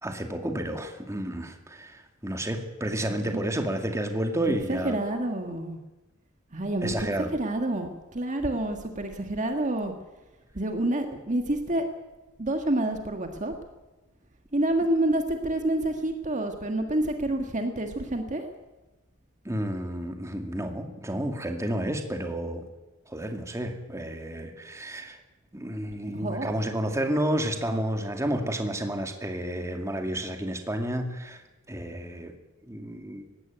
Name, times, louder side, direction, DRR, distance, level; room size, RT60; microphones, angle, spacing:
voice 1, 0.0-5.0 6.8-7.3 19.4-22.6 23.1-25.2 25.5-31.4 31.7-32.3 32.7-33.3, right 1 dB, 15° right, 4 dB, 2.2 m, -31 dB
voice 2, 4.7-5.8 6.5-6.9 7.3-9.9 10.6-11.8 12.4-13.5 14.5-18.5 26.1-26.5, right 1 dB, 35° right, 5 dB, 1.8 m, -28 dB
19.5 x 16.5 x 9.3 m, 1.1 s
head